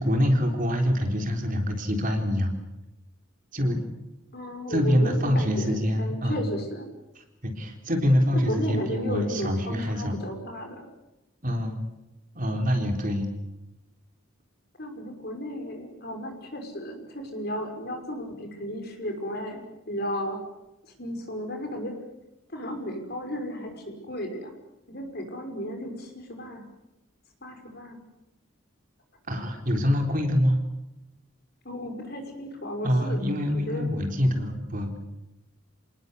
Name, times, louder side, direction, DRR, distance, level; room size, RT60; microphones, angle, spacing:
voice 1, 0.0-2.5 3.5-3.8 4.7-6.4 7.4-10.2 11.4-11.8 12.4-13.3 29.3-30.6 32.8-35.0, equal, 40° right, 4 dB, 3.9 m, -25 dB
voice 2, 4.3-6.9 8.3-10.9 14.8-20.4 21.0-21.9 22.5-24.5 24.9-26.7 27.4-28.0 31.6-33.2 33.5-34.0, equal, 45° left, 4 dB, 5.9 m, -34 dB
28.0 x 19.5 x 8.4 m, 0.96 s
head